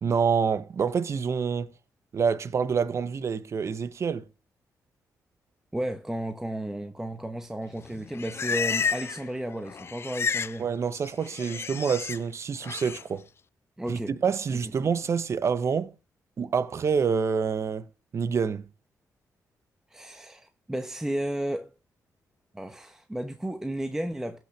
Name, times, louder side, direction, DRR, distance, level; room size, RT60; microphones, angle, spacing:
voice 1, 0.0-1.7 2.1-4.2 10.6-13.3 13.9-15.9 16.4-17.8 18.1-18.7, right 6 dB, 45° right, 0.9 m, -27 dB
voice 2, 5.7-10.7 13.8-14.1 19.9-21.7 22.5-24.4, right 1 dB, 5° right, 0.9 m, -33 dB
Livestock farm animals working animals, 7.8-9.3 9.5-10.6 10.9-12.2 12.6-13.0, left 6 dB, 40° left, 0.4 m, -31 dB
16.0 x 6.2 x 3.3 m
cardioid pair, 105°, 6 cm